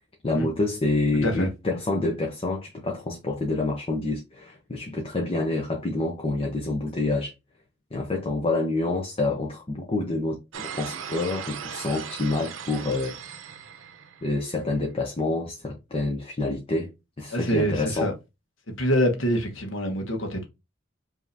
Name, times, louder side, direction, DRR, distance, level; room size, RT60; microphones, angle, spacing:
voice 1, 0.2-7.3 7.9-13.1 14.2-16.9 17.2-18.1, left 2 dB, 30° left, 0.7 m, -27 dB
sound 1, 10.5-14.6, right 7 dB, 90° right, 0.6 m, -38 dB
voice 2, 17.3-18.1 18.8-20.4, equal, 70° left, 1.1 m, -25 dB
5.2 x 2.8 x 2.6 m
head